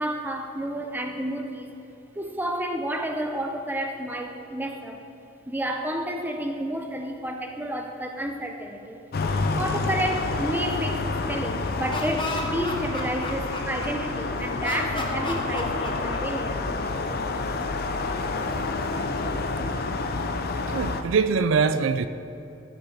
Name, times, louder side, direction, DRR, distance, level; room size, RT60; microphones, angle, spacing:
voice 1, 0.0-1.7 2.2-5.0 5.5-9.0 9.6-16.7, right 1 dB, 10° right, 4 dB, 0.6 m, -30 dB
sound 1, 9.1-21.0, left 3 dB, 50° left, 0.5 m, -28 dB
Laughter, 11.6-14.1 14.6-16.6, left 2 dB, 25° left, 1.0 m, -33 dB
voice 2, 20.7-22.1, right 5 dB, 75° right, 12 dB, 0.4 m, -23 dB
13.5 x 5.5 x 4.5 m, 2.9 s
head